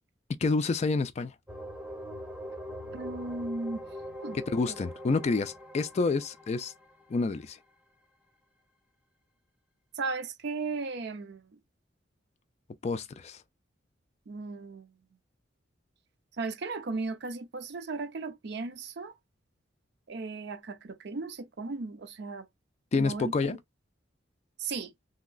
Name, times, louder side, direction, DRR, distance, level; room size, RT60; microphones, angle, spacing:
voice 1, 0.4-1.3 4.3-6.7 7.1-7.6 12.8-13.4 22.9-23.6, left 3 dB, 35° left, 0.3 m, -28 dB
sound 1, 1.5-7.2, equal, 5° right, 0.6 m, -42 dB
voice 2, 2.9-3.8 4.2-4.4 4.7-4.8 10.0-11.6 14.3-14.9 16.4-19.1 20.1-22.5 23.0-23.6 24.6-24.9, right 3 dB, 60° right, 0.5 m, -36 dB
3.0 x 2.8 x 2.4 m
head